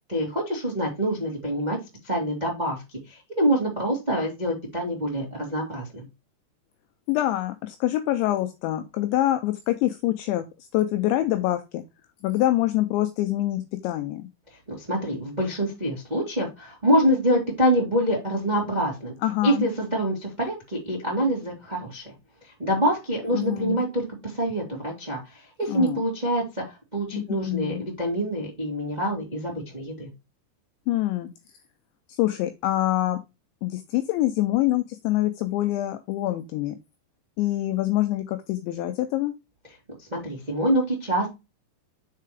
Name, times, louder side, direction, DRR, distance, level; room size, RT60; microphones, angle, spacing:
voice 1, 0.1-1.8 2.0-6.0 14.7-19.1 19.4-22.1 22.6-26.6 26.9-30.1 40.0-41.3, equal, 25° right, -2 dB, 0.9 m, -26 dB
voice 2, 7.1-10.5 10.7-11.8 12.2-14.3 19.2-19.6 23.3-23.8 25.7-26.0 27.1-27.8 30.9-31.3 32.1-33.2 33.6-36.8 37.4-39.3, left 15 dB, 85° left, 8 dB, 2.6 m, -25 dB
6.6 x 4.6 x 4.9 m, 0.25 s
omnidirectional pair, 5.8 m